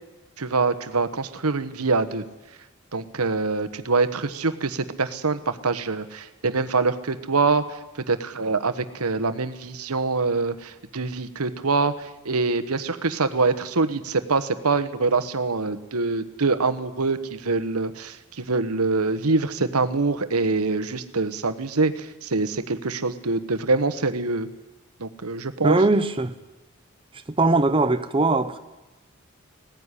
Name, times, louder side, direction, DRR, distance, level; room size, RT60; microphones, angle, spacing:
voice 1, 0.4-2.2 2.9-7.6 8.1-24.5 25.0-25.8, right 3 dB, 85° right, 1.3 m, -24 dB
voice 2, 25.6-26.3 27.4-28.6, right 2 dB, 25° right, 0.7 m, -20 dB
17.5 x 15.0 x 9.9 m
head